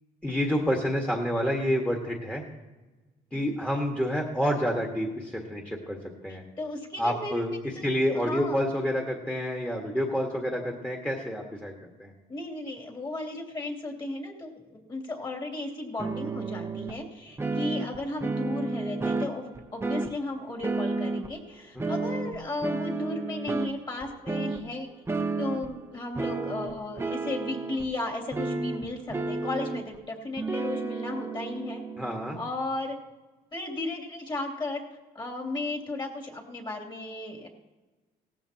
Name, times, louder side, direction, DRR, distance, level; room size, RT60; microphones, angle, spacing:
voice 1, 0.2-2.4 3.3-6.0 6.2-6.4 7.0-7.5 7.8-12.1 32.0-32.4, equal, 5° left, 0 dB, 1.7 m, -28 dB
voice 2, 3.3-3.6 6.3-7.4 7.7-7.9 8.1-8.6 12.3-24.9 25.4-31.8 32.4-33.0 33.5-34.8 35.1-37.5, left 2 dB, 25° left, 1 dB, 2.9 m, -35 dB
sound 1, 16.0-16.9 17.4-20.1 20.6-21.3 21.8-23.8 24.0-24.6 25.1-25.8 26.1-27.9 28.3-30.0 30.4-32.5, right 3 dB, 15° right, 0.8 m, -31 dB
18.0 x 14.5 x 3.0 m, 1.2 s
cardioid pair, 110°, 17 cm